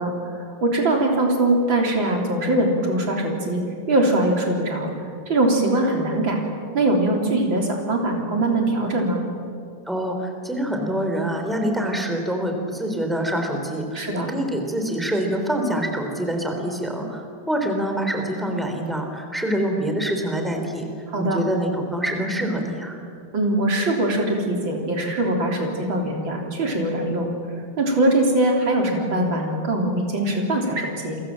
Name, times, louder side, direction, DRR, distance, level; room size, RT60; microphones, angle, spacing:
voice 1, 0.0-3.6 3.9-4.9 5.3-6.4 6.7-9.2 13.9-14.3 21.1-21.4 23.3-27.3 27.8-31.2, right 1 dB, 85° right, 1 dB, 4.3 m, -22 dB
voice 2, 9.9-20.9 21.2-23.0, right 1 dB, ahead, 3 dB, 3.5 m, -25 dB
28.5 x 23.0 x 7.6 m, 2.4 s
omnidirectional pair, 2.1 m